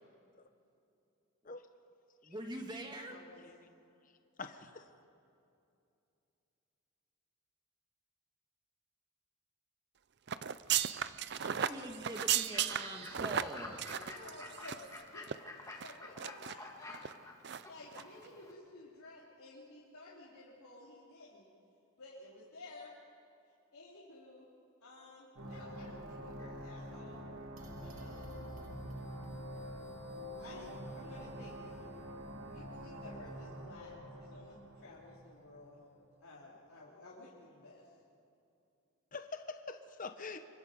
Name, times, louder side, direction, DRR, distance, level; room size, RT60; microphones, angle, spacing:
voice 1, 2.2-3.2 11.4-13.8, right 1 dB, 20° right, 3 dB, 2.0 m, -44 dB
voice 2, 3.1-3.6 13.7-14.8 15.1-15.3 15.8-16.7 17.6-21.5 22.0-22.9 23.7-24.5 24.8-27.2 27.8-28.3 30.4-32.1 32.4-35.8 36.2-37.9, left 2 dB, 85° left, -7 dB, 3.6 m, -54 dB
voice 3, 4.4-4.9 39.1-40.4, left 4 dB, 35° left, 8 dB, 0.9 m, -45 dB
sound 1, 10.3-15.0 15.2-15.4 15.8-16.5 16.9-17.1 17.4-17.6 17.9-18.0, right 10 dB, 50° right, 0.5 m, -35 dB
Fowl / Bird, 12.3-18.5, left 2 dB, 15° left, 2.0 m, -50 dB
sound 2, 25.4-35.9, equal, 70° right, 2.7 m, -46 dB
26.5 x 23.5 x 5.3 m, 2.7 s
head